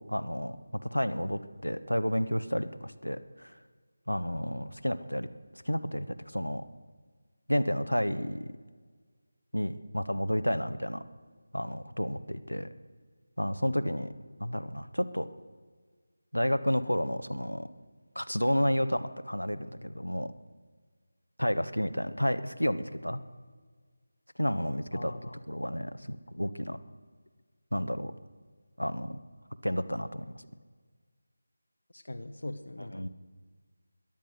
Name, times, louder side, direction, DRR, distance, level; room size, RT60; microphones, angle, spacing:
voice 1, 0.0-3.6 4.1-5.3 5.5-6.6 7.5-8.5 9.5-11.0 11.5-12.7 13.4-14.1 14.4-15.3 16.3-17.7 18.1-20.3 21.4-23.2 24.4-25.1 25.5-26.8 27.7-28.1 28.8-29.2 29.6-30.4 32.9-33.1, equal, 85° left, 11 dB, 1.0 m, -31 dB
voice 2, 24.9-25.4 31.9-33.1, left 1 dB, 60° left, 9 dB, 0.8 m, -41 dB
18.0 x 12.0 x 6.4 m, 1.5 s
figure-of-eight pair, 160°, 0 cm